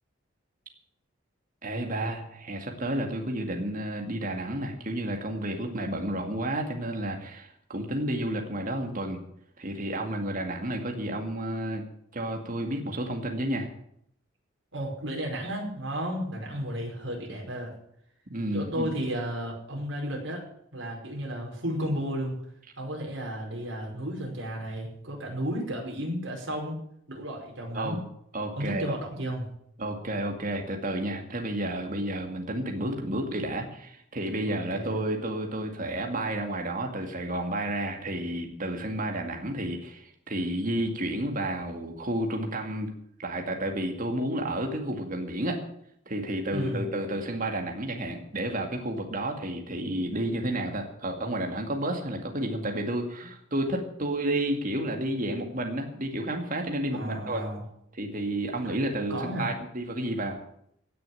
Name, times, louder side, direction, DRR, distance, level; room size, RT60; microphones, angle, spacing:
voice 1, 1.6-9.2 9.6-11.8 12.1-13.7 18.3-18.9 27.7-28.0 28.3-29.0 29.8-42.9 43.2-45.6 46.1-57.4 57.9-60.4, right 1 dB, 45° right, 3 dB, 2.2 m, -31 dB
voice 2, 14.7-17.8 18.5-22.4 22.8-26.8 27.1-28.0 28.6-29.5 34.4-35.0 46.5-47.0 56.9-57.6 58.6-58.7 59.1-59.5, equal, 65° right, 0 dB, 5.3 m, -33 dB
17.0 x 6.9 x 9.0 m, 0.71 s
head